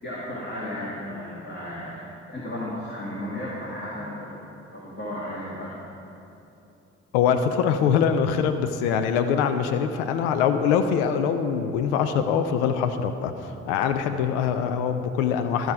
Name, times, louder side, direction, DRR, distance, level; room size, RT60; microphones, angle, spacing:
voice 1, 0.0-2.0 2.3-4.4 4.7-5.8, left 1 dB, 30° left, -6 dB, 1.9 m, -34 dB
voice 2, 7.1-15.7, left 7 dB, 70° left, 8 dB, 0.5 m, -23 dB
12.5 x 6.3 x 5.1 m, 2.8 s
figure-of-eight pair, 40°, 35 cm